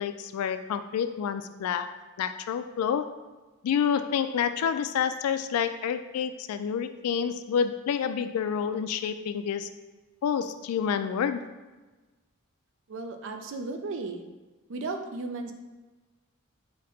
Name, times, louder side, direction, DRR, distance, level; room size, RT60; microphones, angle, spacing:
voice 1, 0.0-3.1 3.6-9.7 10.2-11.4, left 7 dB, 85° left, 14 dB, 0.3 m, -28 dB
voice 2, 12.9-14.2 14.7-15.5, right 3 dB, 60° right, 5 dB, 0.4 m, -35 dB
5.0 x 2.2 x 4.2 m, 1.2 s
head